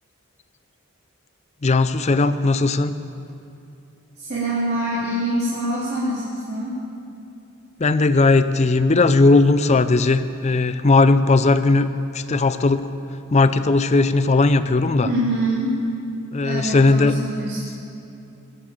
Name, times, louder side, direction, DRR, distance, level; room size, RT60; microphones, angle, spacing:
voice 1, 1.6-3.0 7.8-11.9 12.1-12.9 13.3-15.1 16.3-17.1, left 3 dB, 30° left, 12 dB, 0.5 m, -17 dB
voice 2, 4.2-6.8 15.0-15.8 16.4-17.6, right 1 dB, 50° right, -9 dB, 2.9 m, -25 dB
20.5 x 8.1 x 7.3 m, 2.7 s
head